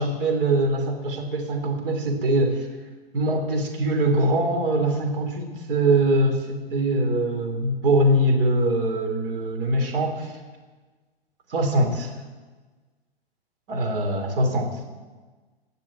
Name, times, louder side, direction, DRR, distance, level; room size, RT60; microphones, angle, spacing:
voice 1, 0.0-2.7 3.1-10.3 11.5-12.1 13.7-14.7, right 1 dB, 60° right, 3 dB, 3.2 m, -23 dB
18.5 x 6.8 x 7.5 m, 1.3 s
hypercardioid pair, 115°, 32 cm